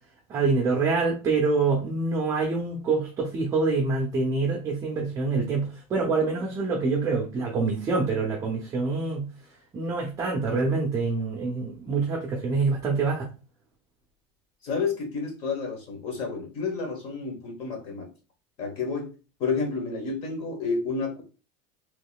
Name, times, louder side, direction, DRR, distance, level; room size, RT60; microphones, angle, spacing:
voice 1, 0.3-9.3 9.7-13.3, right 4 dB, 20° right, -1 dB, 0.6 m, -26 dB
voice 2, 14.6-18.1 18.6-19.1 19.4-21.2, left 4 dB, 40° left, 3 dB, 1.3 m, -30 dB
3.7 x 3.0 x 2.3 m, 0.32 s
cardioid pair, 170°, 15 cm